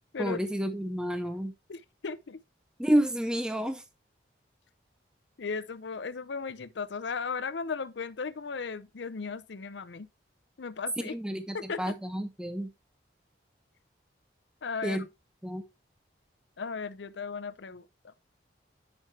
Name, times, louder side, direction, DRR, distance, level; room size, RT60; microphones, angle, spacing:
voice 1, 0.2-1.5 2.8-3.8 11.0-12.7 14.8-15.0 15.4-15.6, equal, 5° right, 0.5 m, -30 dB
voice 2, 1.7-2.4 5.4-10.1 10.6-11.1 11.5-11.9 14.6-15.0 16.6-18.1, left 5 dB, 75° left, 0.6 m, -36 dB
9.3 x 5.3 x 3.2 m
head